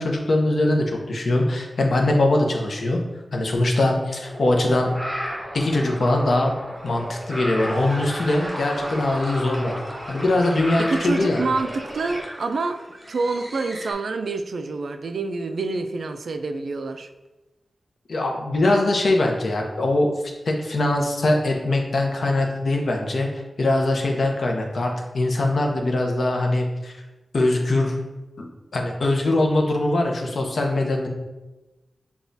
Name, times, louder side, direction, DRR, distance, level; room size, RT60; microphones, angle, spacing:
voice 1, 0.0-3.0 3.3-4.9 5.5-6.5 6.8-9.7 10.1-11.4 18.1-20.1 20.4-23.3 23.6-26.9 27.3-28.0 28.4-31.1, left 2 dB, 65° left, 1 dB, 0.7 m, -22 dB
sound 1, 4.2-12.2, equal, 5° left, 1.4 m, -34 dB
sound 2, 6.2-13.9, right 1 dB, 25° right, 0.7 m, -39 dB
voice 2, 10.8-12.8 13.1-17.1, right 3 dB, 80° right, 8 dB, 0.3 m, -27 dB
6.8 x 2.3 x 2.6 m, 1.1 s
wide cardioid pair, 120°, 0 cm